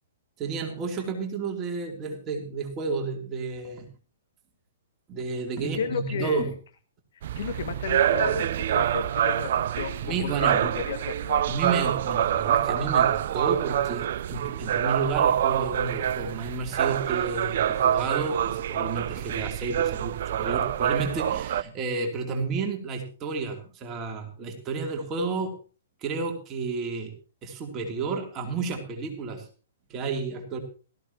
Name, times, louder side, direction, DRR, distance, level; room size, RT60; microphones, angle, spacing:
voice 1, 0.4-3.9 5.1-6.5 10.0-10.7 11.4-25.5 26.0-27.1 27.4-29.5 29.9-30.6, right 4 dB, 25° right, 3 dB, 2.9 m, -31 dB
voice 2, 5.6-6.5 7.4-11.5, left 7 dB, 60° left, 8 dB, 1.7 m, -33 dB
sound 1, 7.2-21.6, right 10 dB, 55° right, 0.5 m, -26 dB
18.0 x 14.0 x 2.9 m, 0.36 s
figure-of-eight pair, 120°, 0 cm